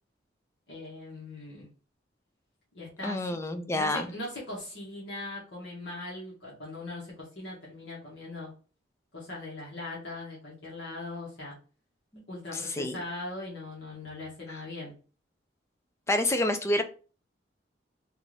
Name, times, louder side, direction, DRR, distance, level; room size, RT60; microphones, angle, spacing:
voice 1, 0.7-1.7 2.7-3.2 3.7-8.5 9.1-11.6 12.3-14.9, left 2 dB, 65° left, -6 dB, 1.5 m, -40 dB
voice 2, 3.0-4.1 12.1-12.2 12.5-13.0 16.1-16.8, left 1 dB, 15° left, 7 dB, 0.4 m, -28 dB
3.4 x 2.6 x 3.2 m, 0.36 s
head